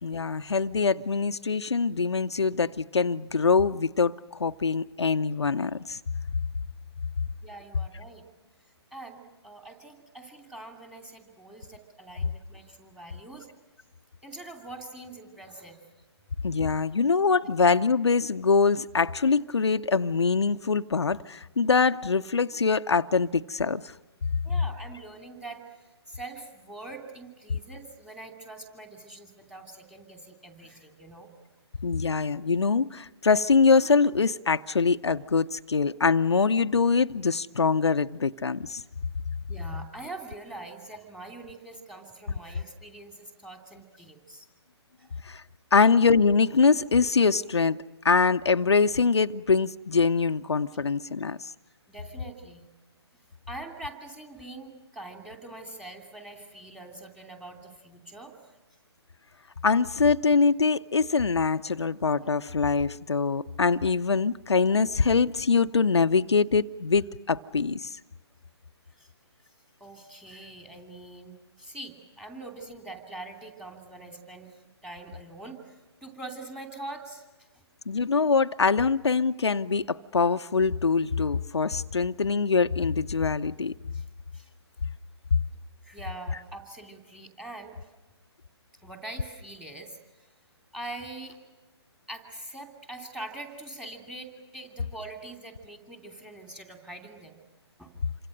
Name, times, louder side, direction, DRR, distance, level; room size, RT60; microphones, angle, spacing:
voice 1, 0.0-4.1 4.4-6.0 16.4-23.9 31.8-38.8 45.2-45.4 45.7-47.8 48.0-51.5 59.6-68.0 77.9-83.7, left 4 dB, 75° left, 0.7 m, -24 dB
voice 2, 7.4-8.2 8.9-13.5 14.2-15.8 24.4-25.6 26.1-31.3 39.5-44.5 45.0-45.1 45.7-45.8 51.7-52.7 53.5-58.5 68.9-69.1 69.8-75.7 76.0-77.2 83.9-84.0 84.3-84.5 85.8-87.7 88.8-90.0 90.7-91.4 92.1-97.4 97.8-97.9, right 2 dB, 5° right, 2.8 m, -43 dB
27.5 x 25.0 x 6.4 m
figure-of-eight pair, 135°, 14 cm